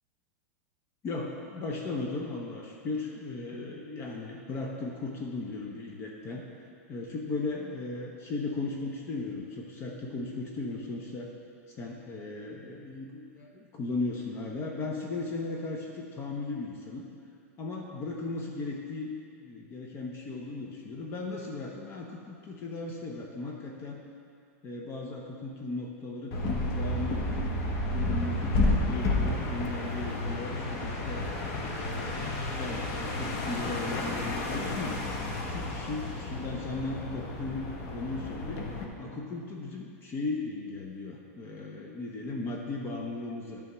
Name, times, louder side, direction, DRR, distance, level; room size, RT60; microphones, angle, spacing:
voice 1, 1.0-6.5 6.9-11.3 11.7-17.0 17.6-19.1 19.4-24.0 24.6-27.4 27.9-31.3 31.7-35.0 35.4-37.7 37.9-38.7 39.0-43.6, left 3 dB, 30° left, -1 dB, 0.7 m, -37 dB
sound 1, 26.3-38.8, left 2 dB, 45° left, 1.1 m, -31 dB
sound 2, 29.0-30.4 31.2-32.7 33.2-35.2, left 4 dB, 60° left, 0.7 m, -47 dB
9.3 x 3.5 x 6.0 m, 2.3 s
supercardioid pair, 130°, 8 cm